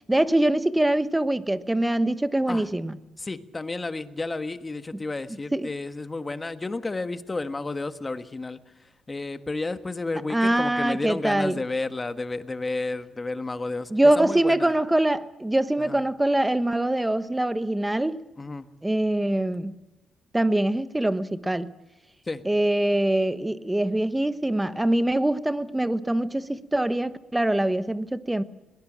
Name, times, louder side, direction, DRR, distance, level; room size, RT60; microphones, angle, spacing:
voice 1, 0.1-3.0 5.5-5.7 10.3-11.6 13.9-18.2 18.8-19.7 20.3-21.7 22.4-28.4, right 1 dB, 10° right, 1.1 m, -23 dB
voice 2, 3.2-14.8 15.8-16.0 18.4-18.7 22.2-22.4, left 3 dB, 20° left, 1.4 m, -32 dB
22.0 x 17.5 x 7.4 m
cardioid pair, 90°, 0 cm